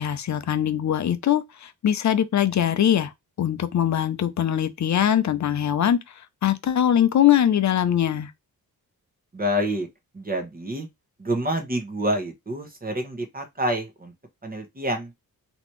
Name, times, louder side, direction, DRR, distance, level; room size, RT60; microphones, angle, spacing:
voice 1, 0.0-3.1 3.4-6.0 6.4-8.3, left 10 dB, 50° left, 0.6 m, -22 dB
voice 2, 9.3-9.9 10.1-10.9 11.2-14.1 14.4-15.1, equal, 25° right, 1.2 m, -27 dB
4.1 x 3.0 x 3.1 m
wide cardioid pair, 145°, 37 cm